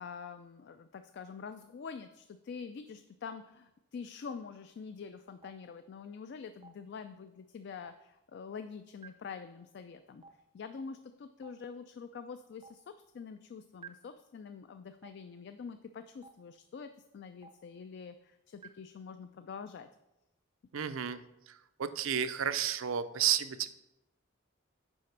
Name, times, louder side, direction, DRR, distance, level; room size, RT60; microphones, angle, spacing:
voice 1, 0.0-10.2 10.5-19.9, left 5 dB, 55° left, 9 dB, 0.3 m, -46 dB
Stream, 5.4-5.5 6.6-6.7 7.8-7.9 9.0-9.1 10.2-10.3 11.4-11.5 12.6-12.7 13.8-13.9 15.0-15.1 16.2-16.3 17.4-17.5 18.6-18.7, right 6 dB, 25° right, 0.5 m, -49 dB
voice 2, 20.7-21.2 21.8-23.7, right 9 dB, 80° right, 12 dB, 0.5 m, -31 dB
6.3 x 5.0 x 5.8 m, 0.91 s
head